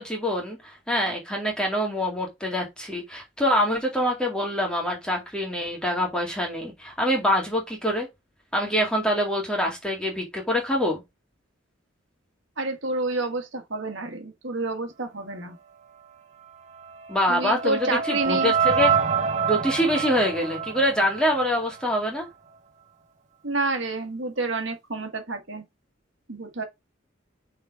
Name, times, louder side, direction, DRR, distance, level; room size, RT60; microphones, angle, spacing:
voice 1, 0.0-8.1 8.5-11.0 17.1-18.9 19.4-22.3, equal, 5° left, 2.1 m, -25 dB
voice 2, 12.6-15.6 17.3-18.5 23.4-25.6 26.3-26.6, right 2 dB, 70° right, 1.6 m, -29 dB
sound 1, 16.7-21.9, right 7 dB, 35° right, 1.2 m, -26 dB
6.0 x 4.1 x 4.8 m
head